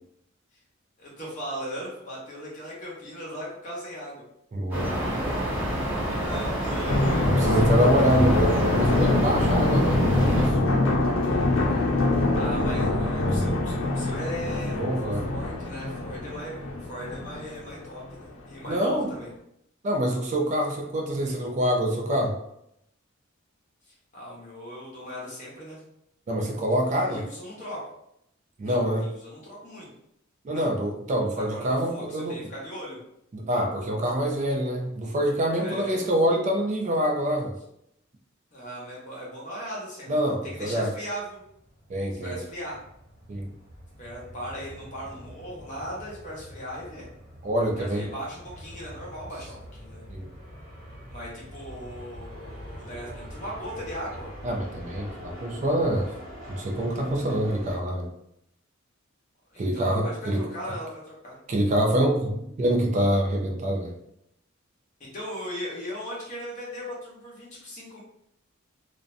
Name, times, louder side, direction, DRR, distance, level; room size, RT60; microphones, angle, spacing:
voice 1, 1.0-4.2 6.1-8.3 12.3-14.8 15.2-19.3 23.9-25.8 26.9-27.8 28.6-29.9 30.5-30.7 31.4-33.0 35.5-35.9 38.5-40.1 40.4-41.4 42.2-42.8 44.0-47.1 47.8-50.0 51.1-54.3 59.5-61.4 65.0-68.0, equal, 40° left, -4 dB, 0.9 m, -38 dB
voice 2, 4.5-5.6 7.2-10.6 14.7-15.3 18.7-19.1 19.8-22.4 26.3-27.3 28.6-29.1 30.4-32.5 33.3-37.5 40.1-40.9 41.9-42.4 43.3-43.5 47.4-48.1 50.1-50.3 54.4-56.1 56.5-58.1 59.6-60.5 61.5-63.9, equal, 35° right, 1 dB, 0.3 m, -25 dB
sound 1, 4.7-10.5, equal, 10° right, 0.9 m, -28 dB
sound 2, 6.9-18.3 18.6-18.7, left 2 dB, 65° left, 0.4 m, -24 dB
sound 3, 41.1-57.8, equal, 75° right, 0.9 m, -44 dB
2.5 x 2.1 x 2.5 m, 0.76 s
head